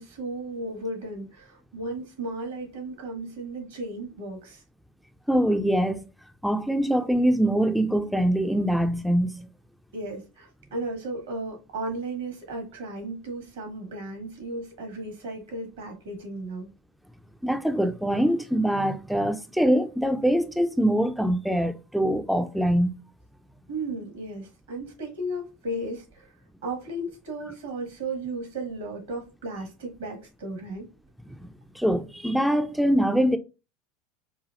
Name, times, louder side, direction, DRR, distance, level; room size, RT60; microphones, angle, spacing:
voice 1, 0.0-4.6 9.9-16.7 23.7-26.3 26.6-30.9, right 2 dB, 75° right, 1.4 m, -35 dB
voice 2, 5.3-6.0 6.4-9.5 17.4-22.9 31.4-31.5 31.7-33.4, equal, ahead, 0.3 m, -23 dB
4.9 x 2.3 x 2.5 m
hypercardioid pair, 80°, 0 cm